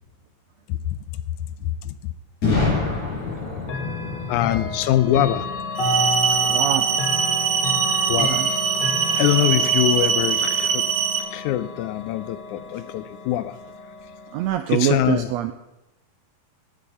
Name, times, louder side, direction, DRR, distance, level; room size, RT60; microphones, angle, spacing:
voice 1, 1.6-2.1 4.3-5.5 8.1-8.4 9.2-10.9 11.3-13.6 14.7-15.3, left 12 dB, 80° left, 14 dB, 1.9 m, -23 dB
Boom, 2.4-6.2, left 3 dB, 60° left, 7.2 m, -27 dB
Chime / Clock, 3.6-14.5, left 2 dB, 45° left, 1.7 m, -30 dB
sound 1, 5.8-11.2, right 7 dB, 55° right, 2.0 m, -22 dB
voice 2, 6.4-7.0 8.2-8.5 14.3-15.5, right 12 dB, 90° right, 9 dB, 1.5 m, -24 dB
17.5 x 7.4 x 5.6 m, 0.98 s
omnidirectional pair, 3.7 m